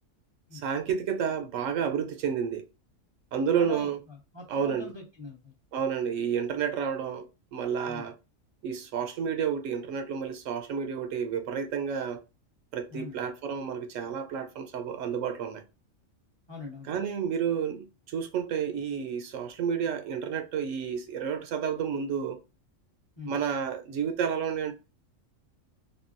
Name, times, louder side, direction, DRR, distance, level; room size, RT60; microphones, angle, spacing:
voice 1, 0.6-2.6 3.3-4.0 4.5-4.9 5.7-7.3 7.5-8.1 8.6-12.2 12.7-15.6 16.9-22.4 23.3-24.7, right 7 dB, 75° right, 0.9 m, -30 dB
voice 2, 3.5-5.5 7.9-8.1 12.9-13.2 16.5-17.0 23.2-23.3, left 4 dB, 25° left, 0.9 m, -43 dB
3.7 x 2.1 x 2.5 m
omnidirectional pair, 1.4 m